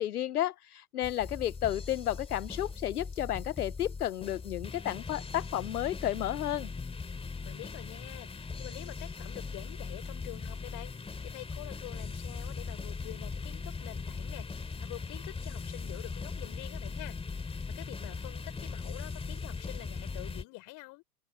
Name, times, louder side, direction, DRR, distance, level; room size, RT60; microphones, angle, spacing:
voice 1, 0.0-6.7, left 12 dB, 75° left, 0.7 m, -32 dB
sound 1, 1.0-20.4, left 4 dB, 10° left, 2.9 m, -39 dB
voice 2, 7.4-21.0, left 23 dB, 45° left, 5.9 m, -47 dB
figure-of-eight pair, 95°, 46 cm